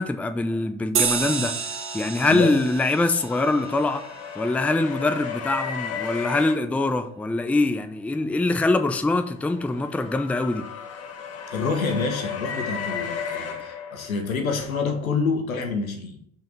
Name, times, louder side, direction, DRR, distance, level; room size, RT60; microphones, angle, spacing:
voice 1, 0.0-1.5 1.9-4.0 4.4-10.6, left 2 dB, 5° left, 0.5 m, -23 dB
sound 1, 1.0-5.9, right 6 dB, 30° right, 1.1 m, -31 dB
sound 2, 3.3-6.6 9.0-14.5, left 6 dB, 35° left, 1.3 m, -34 dB
voice 2, 11.5-16.2, left 4 dB, 85° left, 1.4 m, -27 dB
6.0 x 4.6 x 5.8 m
hypercardioid pair, 80°, 41 cm